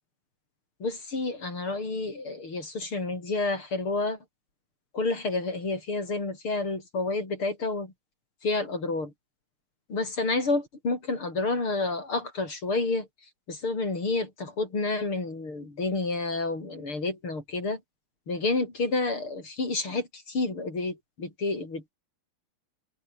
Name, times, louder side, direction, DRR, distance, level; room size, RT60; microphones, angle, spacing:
voice 1, 0.8-4.2 4.9-7.9 8.4-9.1 9.9-13.1 13.5-17.8 18.3-21.9, left 3 dB, 90° left, 7.4 m, -29 dB
open air
omnidirectional pair, 2.3 m